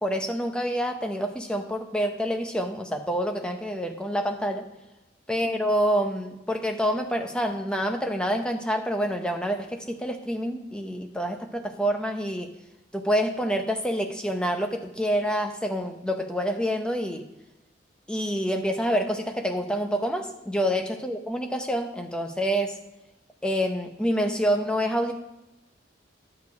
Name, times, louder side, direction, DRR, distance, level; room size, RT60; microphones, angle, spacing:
voice 1, 0.0-4.7 5.3-12.5 12.9-17.3 18.1-22.8 23.4-25.1, equal, 5° left, 4 dB, 0.7 m, -27 dB
11.0 x 6.8 x 4.7 m, 0.96 s
head